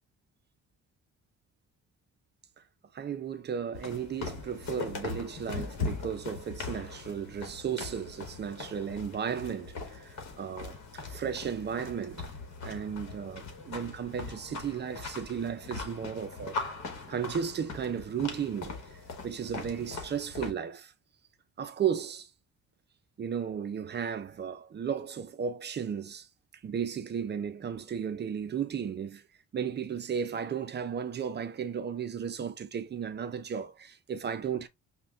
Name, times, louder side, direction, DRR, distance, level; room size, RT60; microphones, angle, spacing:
voice 1, 2.9-12.3 12.6-16.6 17.1-18.7 19.2-20.9 21.6-22.3 23.2-26.3 26.6-29.2 29.5-34.7, right 7 dB, 35° right, 0.4 m, -34 dB
sound 1, 3.7-20.5, left 4 dB, 55° left, 1.2 m, -40 dB
5.3 x 2.2 x 2.4 m
cardioid pair, 115°, 33 cm